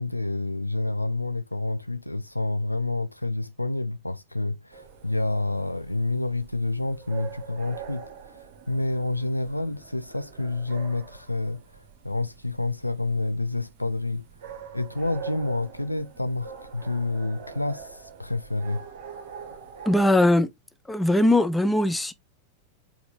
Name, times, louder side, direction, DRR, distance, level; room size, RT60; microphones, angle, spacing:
voice 1, 0.0-14.3 14.7-18.8, left 2 dB, 85° left, 0.3 m, -29 dB
sound 1, 4.7-20.1, right 7 dB, 50° right, 1.0 m, -44 dB
voice 2, 19.9-20.5 20.9-22.1, left 1 dB, 5° left, 0.5 m, -20 dB
4.5 x 2.8 x 2.4 m
figure-of-eight pair, 90°, 0 cm